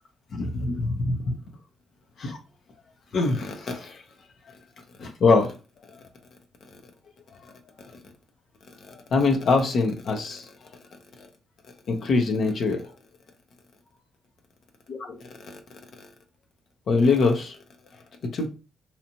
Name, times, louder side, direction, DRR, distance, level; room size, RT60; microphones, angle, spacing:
voice 1, 0.3-1.3 2.2-2.4 3.1-4.0 5.0-5.5 7.8-8.0 8.9-10.7 11.2-11.3 11.9-12.8 14.9-15.6 16.9-17.6 18.3-18.5, left 3 dB, 65° left, 0.7 m, -24 dB
2.9 x 2.4 x 2.9 m
hypercardioid pair, 45°, 0 cm